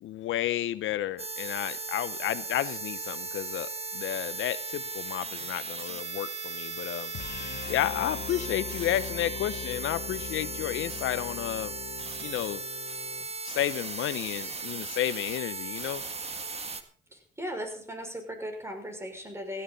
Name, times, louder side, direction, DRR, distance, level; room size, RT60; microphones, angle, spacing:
voice 1, 0.0-7.1 7.4-11.7 12.2-12.6 13.4-16.0, left 12 dB, 80° left, 0.8 m, -32 dB
sound 1, 1.2-16.8, right 4 dB, 30° right, 1.9 m, -37 dB
sound 2, 7.1-13.3, left 9 dB, 60° left, 1.1 m, -41 dB
voice 2, 17.1-19.6, equal, 15° right, 5.7 m, -37 dB
17.0 x 15.0 x 4.1 m
cardioid pair, 90°, 20 cm